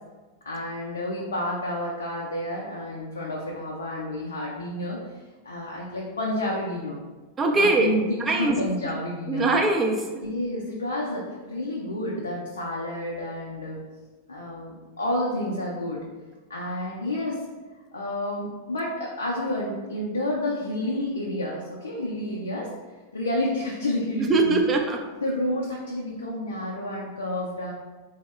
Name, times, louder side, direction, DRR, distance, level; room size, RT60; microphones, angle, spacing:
voice 1, 0.4-7.0 7.5-9.5 10.2-13.8 14.3-16.0 16.5-17.4 17.9-22.7 23.1-24.6 25.2-27.7, left 1 dB, 70° left, -3 dB, 0.4 m, -30 dB
voice 2, 7.4-8.6 9.3-10.2 24.3-25.0, right 3 dB, 20° right, 2 dB, 0.4 m, -22 dB
3.4 x 2.0 x 3.2 m, 1.3 s
figure-of-eight pair, 90°, 0 cm